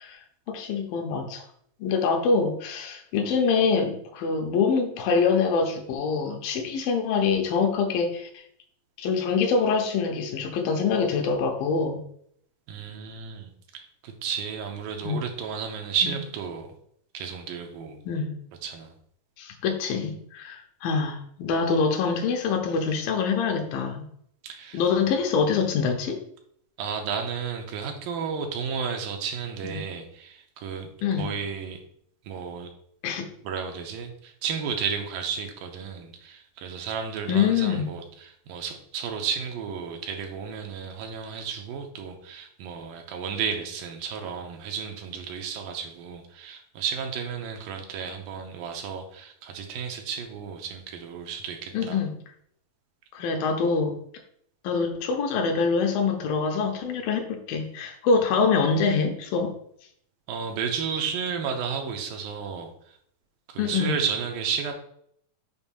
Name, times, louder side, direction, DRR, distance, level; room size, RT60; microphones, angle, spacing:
voice 1, 0.5-1.4 1.8-8.3 9.0-12.0 15.0-15.2 16.0-16.2 18.1-18.3 19.4-24.1 24.7-26.2 29.6-29.8 31.0-31.3 33.0-33.3 37.3-37.9 51.7-52.2 53.1-54.0 54.6-59.5 63.6-64.0, left 5 dB, 80° left, 4 dB, 2.6 m, -25 dB
voice 2, 12.7-16.7 17.1-18.0 18.6-18.9 24.4-24.8 26.8-31.8 32.3-32.7 33.4-52.0 60.3-63.0 63.5-64.7, right 6 dB, 80° right, 4 dB, 2.5 m, -33 dB
7.0 x 2.6 x 5.3 m, 0.67 s
omnidirectional pair, 4.0 m